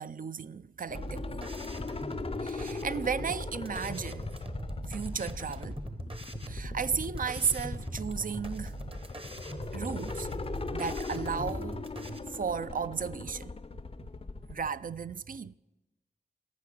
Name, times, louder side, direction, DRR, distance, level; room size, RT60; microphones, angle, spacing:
voice 1, 0.0-1.5 2.4-4.3 4.9-5.8 6.5-8.8 9.6-10.3 10.7-11.8 12.1-13.5 14.5-15.6, right 6 dB, 50° right, 0.4 m, -34 dB
sound 1, 0.9-14.7, left 3 dB, 35° left, 0.5 m, -39 dB
sound 2, 0.9-12.2, right 2 dB, 30° right, 0.9 m, -41 dB
14.5 x 5.7 x 6.1 m
cardioid pair, 40°, 18 cm